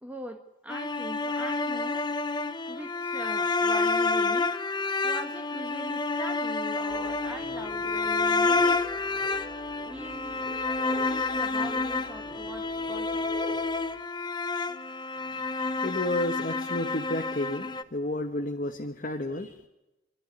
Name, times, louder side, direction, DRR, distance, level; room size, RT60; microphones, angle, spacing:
voice 1, 0.0-2.1 2.7-4.6 5.0-8.8 9.8-10.6 11.1-13.3, right 1 dB, 5° right, 5 dB, 1.3 m, -42 dB
sound 1, 0.7-17.8, left 3 dB, 20° left, 0.7 m, -29 dB
sound 2, 6.9-14.0, right 1 dB, 25° right, 2.9 m, -45 dB
voice 2, 15.4-19.6, left 1 dB, 40° left, 4 dB, 1.2 m, -32 dB
26.5 x 12.5 x 9.6 m, 1.0 s
head